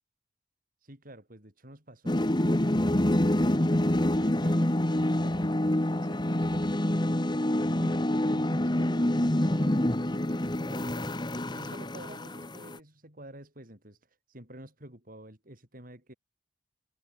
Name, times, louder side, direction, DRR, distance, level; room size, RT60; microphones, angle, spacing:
voice 1, 0.8-6.7 7.8-11.2 11.5-14.0 14.3-16.1, right 1 dB, 50° right, 6.0 m, -50 dB
sound 1, 2.1-12.8, left 1 dB, 25° left, 1.3 m, -27 dB
head